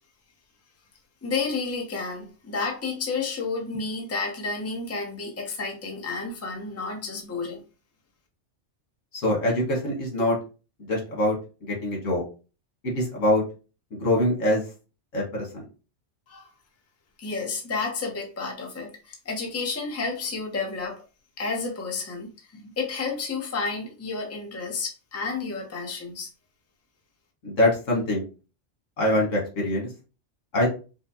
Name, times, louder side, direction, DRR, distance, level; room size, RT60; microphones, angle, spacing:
voice 1, 1.2-7.6 16.3-16.5 17.2-21.0 21.4-26.3, left 4 dB, 15° left, 0.6 m, -31 dB
voice 2, 9.1-10.4 10.9-11.4 11.6-12.2 12.8-13.4 13.9-14.6 15.1-15.6 27.4-28.2 29.0-29.9 30.5-30.7, left 1 dB, 90° left, 1.8 m, -24 dB
4.7 x 2.2 x 2.8 m
omnidirectional pair, 1.3 m